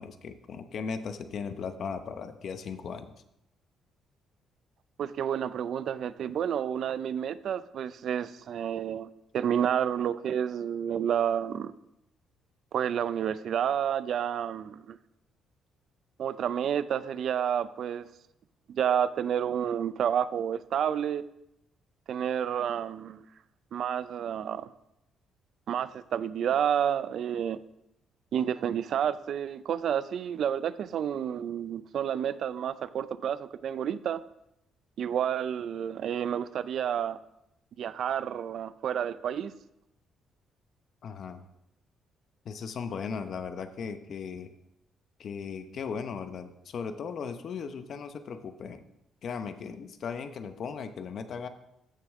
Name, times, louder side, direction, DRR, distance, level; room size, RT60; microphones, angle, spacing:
voice 1, 0.0-3.1 41.0-41.4 42.4-44.5 45.2-48.8 49.2-51.5, left 6 dB, 55° left, 9 dB, 0.8 m, -37 dB
voice 2, 5.0-9.1 9.3-11.7 12.7-15.0 16.2-18.1 18.7-21.3 22.1-23.3 23.7-24.7 25.7-27.6 28.3-34.2 35.0-37.2 37.8-39.6, right 9 dB, 60° right, 15 dB, 0.4 m, -30 dB
14.5 x 6.5 x 3.6 m, 0.84 s
cardioid pair, 120°, 0 cm